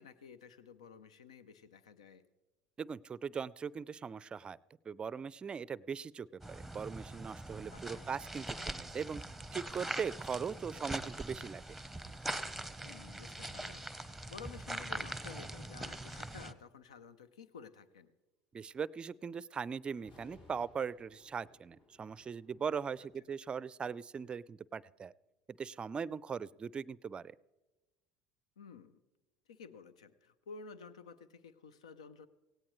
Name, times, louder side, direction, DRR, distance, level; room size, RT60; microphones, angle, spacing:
voice 1, 0.0-2.2 7.7-8.1 12.8-18.1 28.6-29.0 29.5-32.3, left 5 dB, 90° left, 15 dB, 0.6 m, -52 dB
voice 2, 2.8-4.6 4.9-9.2 9.5-11.6 18.5-25.1 25.5-27.3, right 6 dB, 30° right, 21 dB, 0.4 m, -40 dB
sound 1, 6.4-16.5, right 1 dB, ahead, 0.9 m, -42 dB
sound 2, 20.0-23.2, left 1 dB, 60° left, 5.6 m, -62 dB
17.5 x 17.0 x 3.2 m, 1.1 s
hypercardioid pair, 75°, 3 cm